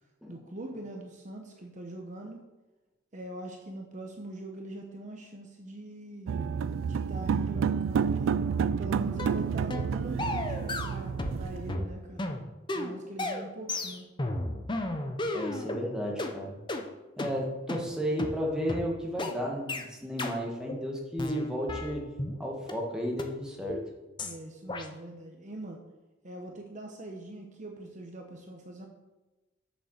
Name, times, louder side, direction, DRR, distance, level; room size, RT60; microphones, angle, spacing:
voice 1, 0.3-2.4 3.1-6.3 6.9-8.5 8.8-12.3 12.7-14.1 24.2-25.8 26.2-28.9, right 1 dB, 40° right, 2 dB, 1.0 m, -42 dB
sound 1, 6.3-11.7, right 6 dB, 85° right, 0.3 m, -29 dB
sound 2, 9.2-9.4 9.7-9.9 10.2-11.4 11.7-15.8 16.2-16.3 16.7-16.8 17.2-17.3 17.7-17.8 18.2-18.3 18.7-18.8 19.2-19.3 19.7-19.8 20.2-20.3 20.7-20.8 21.2-22.4 22.7-22.8 23.2-23.3 23.7-23.9 24.2-24.3 24.7-24.8, left 2 dB, 25° left, 0.8 m, -33 dB
voice 2, 15.3-16.6 17.2-22.1 22.4-23.8, equal, 5° right, -1 dB, 1.7 m, -33 dB
6.8 x 6.7 x 6.5 m, 1.1 s
head